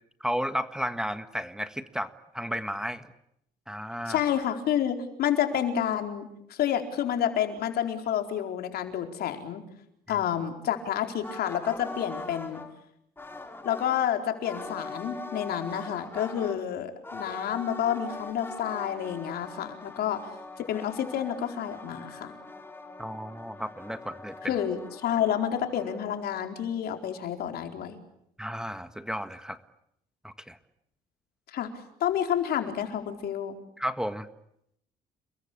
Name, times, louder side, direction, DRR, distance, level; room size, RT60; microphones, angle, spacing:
voice 1, 0.2-2.1 2.3-3.1 3.7-4.2 10.1-10.2 23.0-24.6 28.4-29.6 30.2-30.6 33.8-34.3, equal, 5° right, 11 dB, 1.5 m, -33 dB
voice 2, 4.1-9.6 10.1-12.6 13.6-20.3 20.6-22.3 24.4-28.0 31.5-31.7 32.0-33.6, left 9 dB, 70° left, 6 dB, 4.5 m, -29 dB
sound 1, 11.2-12.7 13.2-14.1 14.4-16.6 17.0-26.8, left 2 dB, 15° left, 4.4 m, -42 dB
30.0 x 22.0 x 8.6 m, 0.74 s
cardioid pair, 110°, 17 cm